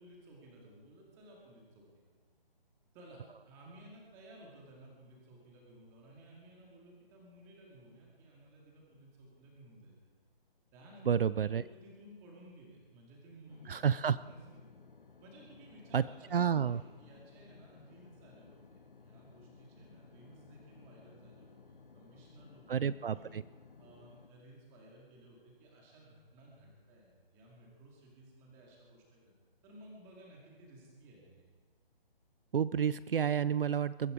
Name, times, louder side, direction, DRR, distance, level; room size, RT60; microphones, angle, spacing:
voice 1, 0.0-2.1 2.9-9.9 10.7-13.8 14.2-14.7 15.2-23.3 23.8-29.3 29.6-31.4, right 1 dB, 10° right, -2 dB, 2.1 m, -57 dB
voice 2, 11.1-11.6 13.7-14.2 15.9-16.0 16.3-16.8 22.7-23.4 32.5-34.1, right 8 dB, 65° right, 17 dB, 0.5 m, -30 dB
sound 1, 13.5-24.3, left 5 dB, 60° left, 1.7 m, -58 dB
22.0 x 13.5 x 4.9 m, 1.4 s
hypercardioid pair, 175°, 30 cm